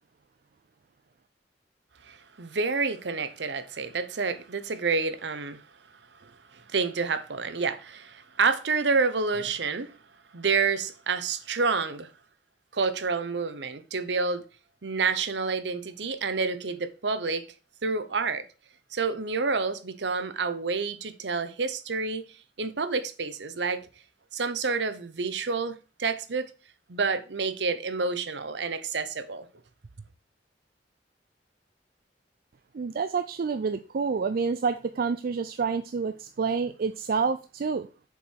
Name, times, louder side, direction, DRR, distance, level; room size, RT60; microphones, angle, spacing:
voice 1, 2.0-5.6 6.2-9.9 10.3-12.1 12.7-14.4 14.8-17.4 17.8-18.4 18.9-23.9 24.3-26.5 26.9-29.5, right 4 dB, 70° right, 0.8 m, -29 dB
voice 2, 32.7-37.9, right 5 dB, 55° right, 0.4 m, -28 dB
6.8 x 4.7 x 4.4 m
head